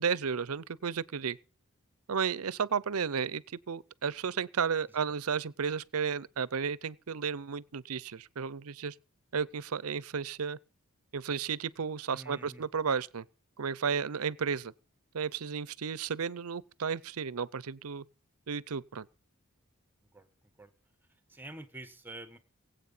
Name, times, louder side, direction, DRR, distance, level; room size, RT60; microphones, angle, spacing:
voice 1, 0.0-1.4 2.1-8.9 9.3-10.6 11.1-13.2 13.6-14.7 15.1-18.0 18.5-19.1, right 6 dB, 85° right, 0.6 m, -33 dB
voice 2, 12.1-12.7 20.1-20.3 20.6-20.7 21.3-22.4, right 2 dB, 10° right, 1.2 m, -47 dB
22.5 x 8.3 x 5.5 m
head